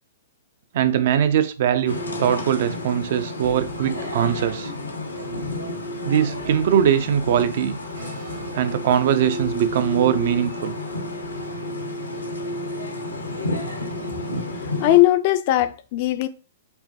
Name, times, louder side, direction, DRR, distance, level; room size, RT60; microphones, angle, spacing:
voice 1, 0.7-4.7 6.0-7.8 8.5-10.8, right 9 dB, 50° right, 0.4 m, -21 dB
sound 1, 1.9-15.0, left 1 dB, 80° left, 0.7 m, -31 dB
sound 2, 3.4-4.7 4.9-8.8 9.4-11.8, right 4 dB, 65° right, 1.0 m, -46 dB
voice 2, 14.8-16.3, left 15 dB, 40° left, 0.4 m, -18 dB
5.4 x 2.1 x 2.8 m
figure-of-eight pair, 105°, 0 cm